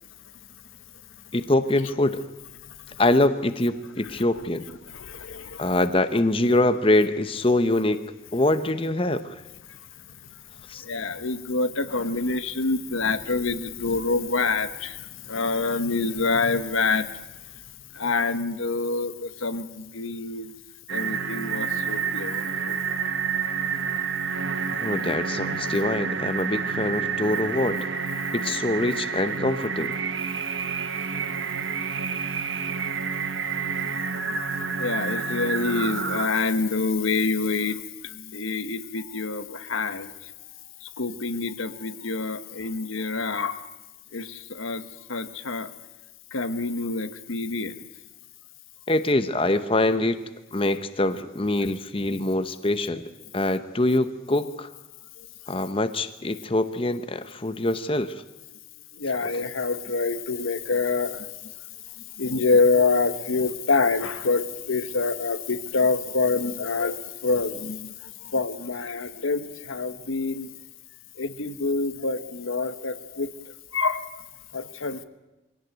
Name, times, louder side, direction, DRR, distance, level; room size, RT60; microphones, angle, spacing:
voice 1, 1.3-2.2 3.0-4.6 5.6-8.0 8.3-9.4 10.7-10.8 24.8-27.8 28.3-29.9 48.9-50.2 50.5-53.0 53.3-54.7 55.5-58.1 59.2-59.3, left 2 dB, 25° left, 10 dB, 0.9 m, -24 dB
voice 2, 4.8-5.7 10.8-17.1 17.9-20.5 20.9-22.8 34.4-34.5 34.8-40.1 41.0-43.7 44.1-44.8 45.1-45.7 46.3-47.7 52.1-52.2 59.0-61.3 62.2-67.9 68.2-70.5 71.2-73.3 73.7-74.2 74.5-75.0, left 3 dB, 85° left, 11 dB, 1.3 m, -26 dB
sound 1, 20.9-36.3, right 6 dB, 70° right, 1.2 m, -29 dB
23.5 x 17.5 x 9.1 m, 1.1 s
head